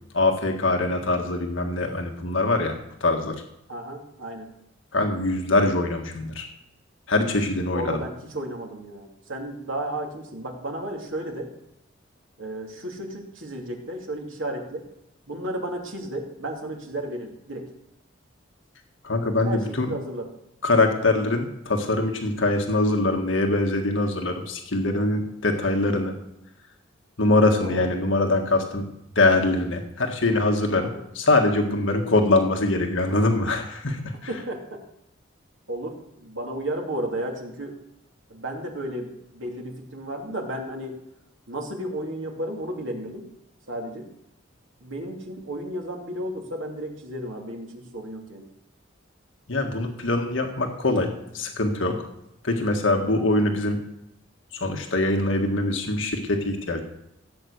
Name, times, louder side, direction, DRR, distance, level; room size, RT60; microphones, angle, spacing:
voice 1, 0.1-3.4 4.9-6.5 7.1-8.0 19.0-19.9 20.6-26.1 27.2-28.8 29.1-34.3 49.5-52.1 52.4-53.8 54.5-56.8, left 2 dB, 75° left, 3 dB, 1.7 m, -23 dB
voice 2, 3.7-4.5 7.7-11.5 12.4-14.9 15.3-17.7 19.4-20.3 27.6-27.8 30.8-31.0 34.3-34.8 35.7-37.8 38.3-41.0 41.5-43.3 43.7-44.1 44.8-48.5, right 1 dB, 85° right, 1 dB, 2.8 m, -33 dB
16.0 x 8.3 x 6.5 m, 0.82 s
head